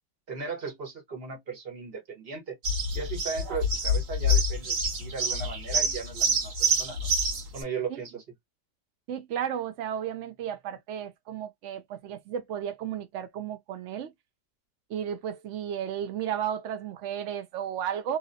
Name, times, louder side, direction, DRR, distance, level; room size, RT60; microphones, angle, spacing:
voice 1, 0.3-2.6 2.9-7.1 7.5-8.2, right 5 dB, 40° right, 1.3 m, -37 dB
sound 1, 2.6-7.6, equal, 55° right, 1.3 m, -26 dB
voice 2, 9.1-14.1 14.9-18.2, right 9 dB, 85° right, 0.6 m, -33 dB
3.0 x 2.7 x 2.6 m
omnidirectional pair, 1.8 m